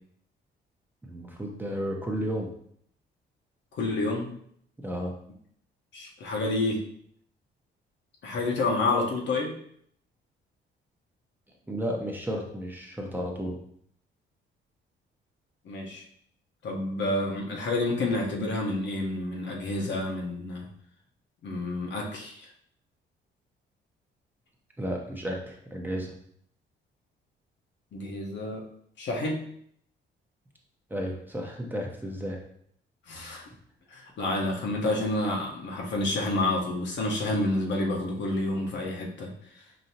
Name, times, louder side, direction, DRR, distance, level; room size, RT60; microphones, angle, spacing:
voice 1, 1.0-2.5 4.8-5.1 11.7-13.6 24.8-26.1 30.9-32.4, equal, 10° right, 0 dB, 0.8 m, -33 dB
voice 2, 3.7-4.3 5.9-6.8 8.2-9.5 15.6-16.0 16.6-20.7 21.4-22.5 27.9-28.6 29.0-29.4 33.1-33.4 33.9-39.3, left 2 dB, 65° left, -1 dB, 1.0 m, -29 dB
5.1 x 2.7 x 2.8 m, 0.66 s
cardioid pair, 90°, 20 cm